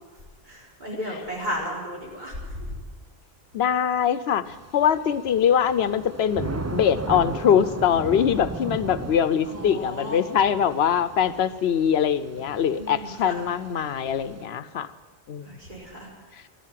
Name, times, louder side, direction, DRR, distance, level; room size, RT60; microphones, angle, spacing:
voice 1, 0.4-2.7 9.5-10.2 12.7-13.4 15.4-16.1, equal, 45° right, -4 dB, 4.6 m, -34 dB
voice 2, 3.5-14.9 15.3-15.4, left 8 dB, 85° left, 13 dB, 0.9 m, -23 dB
Thunder / Rain, 4.5-14.4, right 3 dB, 25° right, 0.3 m, -37 dB
15.5 x 12.0 x 7.5 m, 1.3 s
omnidirectional pair, 1.0 m